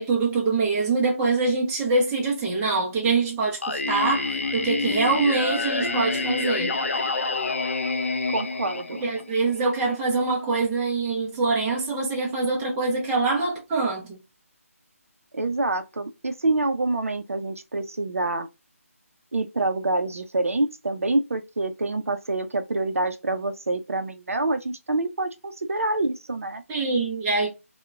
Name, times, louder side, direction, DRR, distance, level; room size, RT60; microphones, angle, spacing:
voice 1, 0.0-6.7 9.0-14.2 26.7-27.5, right 3 dB, 10° right, 0.5 m, -24 dB
Singing, 3.6-9.6, left 3 dB, 60° left, 0.5 m, -27 dB
voice 2, 8.3-9.0 15.3-18.5 19.3-26.6, right 2 dB, 65° right, 0.4 m, -26 dB
3.6 x 2.1 x 2.2 m
figure-of-eight pair, 155°, 8 cm